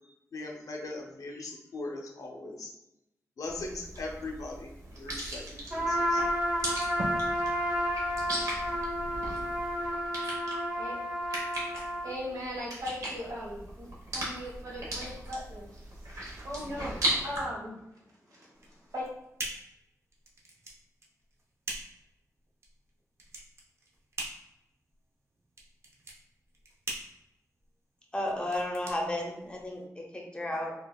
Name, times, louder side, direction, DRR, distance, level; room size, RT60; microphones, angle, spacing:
voice 1, 0.3-2.7 3.4-5.4 5.7-6.2, left 2 dB, 70° left, 0 dB, 0.7 m, -40 dB
sound 1, 3.5-17.4, right 1 dB, 65° right, 1.1 m, -37 dB
Trumpet, 5.7-12.1, equal, 15° right, 1.0 m, -31 dB
voice 2, 12.0-13.9 14.1-17.7 18.3-19.0, equal, 80° right, -5 dB, 1.4 m, -39 dB
sound 2, 18.5-29.8, right 2 dB, 50° right, 0.6 m, -43 dB
voice 3, 28.1-30.7, left 1 dB, 15° left, -1 dB, 0.7 m, -33 dB
4.5 x 2.4 x 2.3 m, 0.85 s
wide cardioid pair, 135°, 6 cm